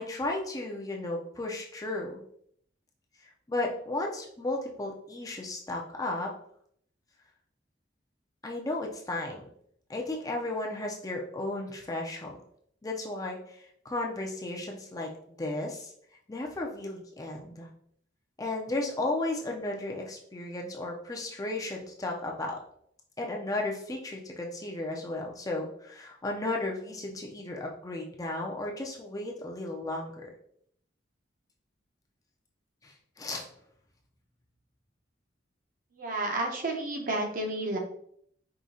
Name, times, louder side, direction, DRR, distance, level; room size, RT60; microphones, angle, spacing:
voice 1, 0.0-2.2 3.2-6.3 8.4-9.5 9.9-12.4 12.8-15.1 15.4-15.9 16.3-17.7 18.4-22.6 23.2-30.3 32.8-33.5, left 2 dB, 20° left, 0 dB, 0.5 m, -34 dB
voice 2, 35.9-37.8, right 2 dB, 45° right, 1 dB, 0.8 m, -31 dB
4.9 x 2.8 x 2.7 m, 0.66 s
head